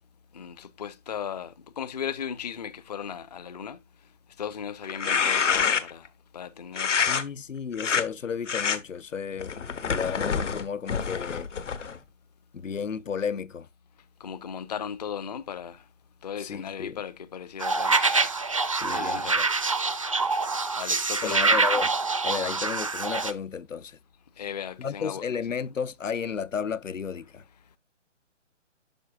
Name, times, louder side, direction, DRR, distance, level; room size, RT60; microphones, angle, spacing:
voice 1, 0.3-3.8 4.4-6.1 6.3-7.0 14.2-15.8 16.2-18.0 18.9-19.5 20.8-21.6 24.4-25.2, left 8 dB, 35° left, 0.5 m, -36 dB
sound 1, 4.8-6.1 6.8-7.2 7.7-8.0 8.5-8.8 9.4-12.0, left 6 dB, 70° left, 1.2 m, -27 dB
voice 2, 7.1-9.6 9.8-11.5 12.5-13.7 16.4-17.0 18.7-19.5 21.2-21.9 22.2-24.0 24.8-27.4, left 6 dB, 90° left, 0.7 m, -33 dB
sound 2, 17.6-23.3, right 3 dB, 30° right, 0.4 m, -25 dB
11.5 x 4.6 x 2.3 m
figure-of-eight pair, 145°, 38 cm